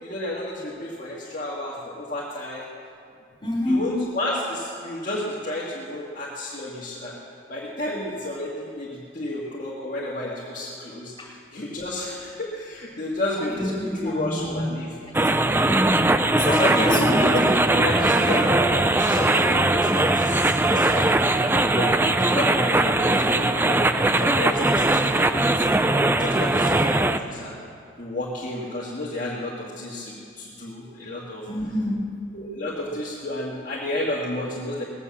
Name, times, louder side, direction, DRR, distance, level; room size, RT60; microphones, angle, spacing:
voice 1, 0.0-2.7 3.7-7.2 7.5-15.0 16.4-21.1 21.4-23.9 24.2-25.6 26.1-27.6 28.0-31.5 32.3-34.8, left 1 dB, 40° left, -6 dB, 1.7 m, -31 dB
voice 2, 3.4-4.0 11.2-11.3 13.5-14.7 15.4-16.1 16.3-17.3 26.6-26.9 31.5-32.2, left 1 dB, 25° left, -4 dB, 3.5 m, -27 dB
sound 1, 15.1-27.2, right 2 dB, 10° right, 0.3 m, -20 dB
19.0 x 8.2 x 7.2 m, 2.3 s
head